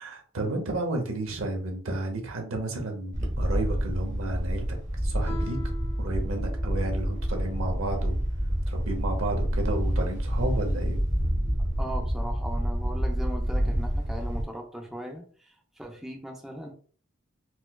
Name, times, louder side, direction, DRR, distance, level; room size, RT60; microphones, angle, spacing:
voice 1, 0.0-4.7 5.0-5.7 6.0-8.2 8.7-11.0, right 2 dB, 75° right, 3 dB, 0.8 m, -32 dB
Wind, 3.1-14.4, equal, 35° right, 0.7 m, -28 dB
Guitar, 5.2-7.7, left 2 dB, 30° left, 0.7 m, -43 dB
voice 2, 11.8-16.7, equal, ahead, 0 dB, 0.4 m, -38 dB
4.2 x 2.1 x 2.2 m, 0.44 s
head